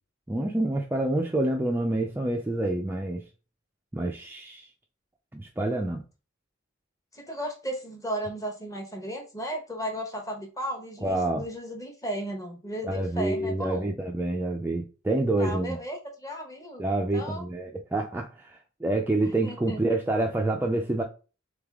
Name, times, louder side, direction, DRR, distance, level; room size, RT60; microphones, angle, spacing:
voice 1, 0.3-3.2 3.9-4.7 5.3-6.0 11.0-11.4 12.8-15.8 16.8-21.0, right 2 dB, 10° right, 0.4 m, -27 dB
voice 2, 7.1-13.9 15.4-16.8 17.1-17.4 19.2-19.8, right 1 dB, 15° left, 1.0 m, -35 dB
3.5 x 3.3 x 3.5 m
head